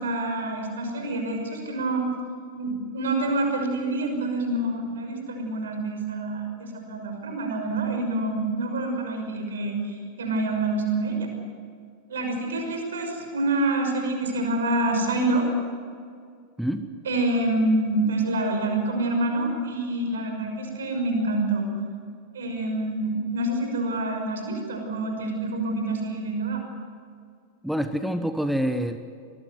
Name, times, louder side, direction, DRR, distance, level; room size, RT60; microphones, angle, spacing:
voice 1, 0.0-2.0 2.5-11.3 12.1-15.4 17.1-21.7 22.3-26.6, right 2 dB, 65° right, 4 dB, 6.1 m, -27 dB
voice 2, 27.6-29.0, equal, ahead, 9 dB, 1.2 m, -26 dB
25.5 x 20.0 x 8.0 m, 2.2 s
figure-of-eight pair, 90°, 0 cm